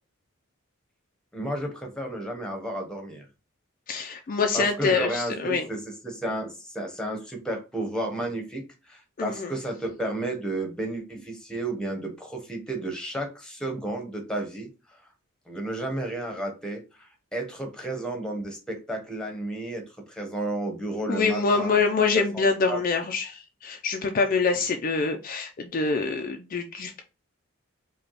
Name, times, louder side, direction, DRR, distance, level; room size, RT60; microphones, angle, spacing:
voice 1, 1.3-3.2 4.5-14.7 15.5-19.8 20.1-21.8 22.1-22.8, right 1 dB, 5° left, 0.9 m, -32 dB
voice 2, 3.9-5.7 9.2-9.5 21.1-27.0, left 4 dB, 40° left, 0.4 m, -25 dB
4.9 x 2.2 x 3.0 m
head